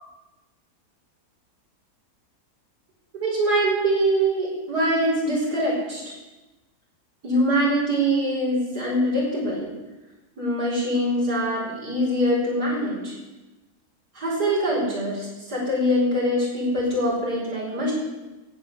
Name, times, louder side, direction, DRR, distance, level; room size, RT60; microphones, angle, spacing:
voice 1, 3.2-6.0 7.2-9.7 10.4-13.2 14.1-17.9, equal, 80° right, -4 dB, 5.7 m, -23 dB
16.0 x 7.8 x 7.6 m, 1.1 s
omnidirectional pair, 1.7 m